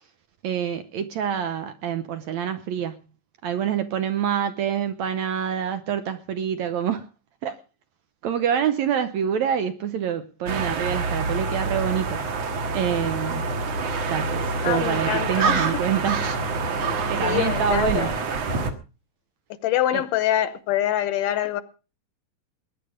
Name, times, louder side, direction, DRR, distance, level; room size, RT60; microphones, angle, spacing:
voice 1, 0.4-3.0 3.4-7.1 7.4-7.6 8.2-13.5 14.1-16.2 16.8-18.1 19.9-20.0, right 9 dB, 70° right, 1.8 m, -26 dB
sound 1, 10.5-18.7, right 4 dB, 55° right, 2.4 m, -26 dB
voice 2, 14.6-15.8 16.8-18.1 19.6-21.6, left 12 dB, 75° left, 2.4 m, -25 dB
20.5 x 10.0 x 5.1 m
omnidirectional pair, 4.0 m